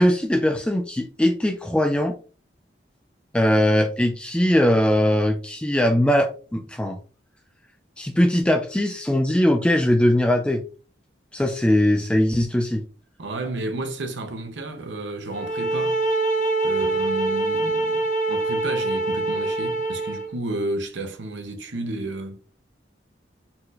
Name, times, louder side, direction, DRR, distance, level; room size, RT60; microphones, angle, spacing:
voice 1, 0.0-2.2 3.3-7.0 8.0-10.6 11.3-12.8, left 1 dB, 5° left, 0.4 m, -20 dB
voice 2, 13.2-16.0 16.6-22.4, right 2 dB, 90° right, 0.8 m, -32 dB
sound 1, 15.3-20.3, right 2 dB, 45° left, 0.7 m, -24 dB
4.3 x 4.0 x 2.5 m
head